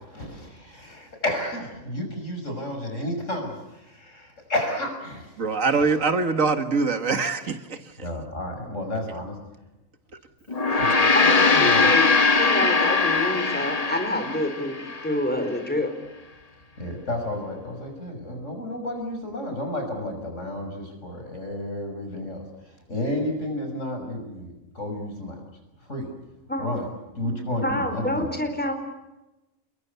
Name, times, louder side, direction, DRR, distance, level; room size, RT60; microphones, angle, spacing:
voice 1, 0.1-5.3 8.0-9.4 10.7-11.9 16.8-25.4 25.8-26.1 26.6-26.9 27.2-28.3, left 1 dB, 65° left, 4 dB, 6.7 m, -31 dB
voice 2, 5.4-8.1, right 4 dB, 75° right, 9 dB, 2.1 m, -24 dB
Gong, 10.5-15.1, left 4 dB, 30° left, 1.1 m, -21 dB
voice 3, 11.1-12.1 12.4-14.8 15.0-15.9 26.5-26.7 27.6-28.7, left 1 dB, 5° left, 6 dB, 4.2 m, -27 dB
28.5 x 22.0 x 8.3 m, 1.0 s
omnidirectional pair, 1.4 m